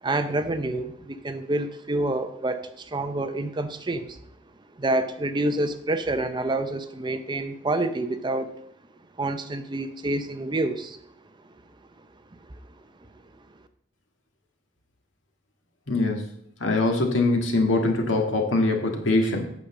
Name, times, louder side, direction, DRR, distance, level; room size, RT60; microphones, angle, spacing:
voice 1, 0.0-4.2 4.8-8.5 9.2-11.0, right 2 dB, 25° right, 9 dB, 0.6 m, -27 dB
voice 2, 15.9-16.3 16.6-19.5, left 2 dB, 80° left, 2 dB, 1.8 m, -23 dB
8.4 x 5.1 x 7.0 m, 0.75 s
head